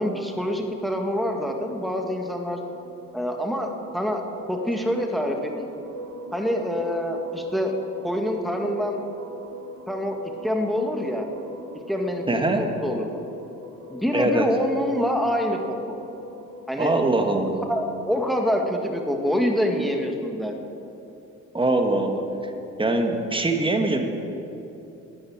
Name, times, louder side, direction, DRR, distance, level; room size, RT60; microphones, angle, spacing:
voice 1, 0.0-2.6 3.1-4.2 4.5-5.7 6.3-7.7 8.0-9.0 9.9-10.2 10.4-11.3 11.9-12.2 12.6-13.1 13.9-16.0 16.7-16.9 17.7-20.5, equal, ahead, 3 dB, 1.8 m, -26 dB
sound 1, 1.2-17.6, equal, 75° right, 1.6 m, -42 dB
voice 2, 12.3-12.7 14.1-14.5 16.8-17.7 21.5-22.3 22.8-24.0, right 2 dB, 15° right, 4 dB, 1.7 m, -22 dB
13.0 x 9.4 x 8.8 m, 2.9 s
cardioid pair, 90°, 30 cm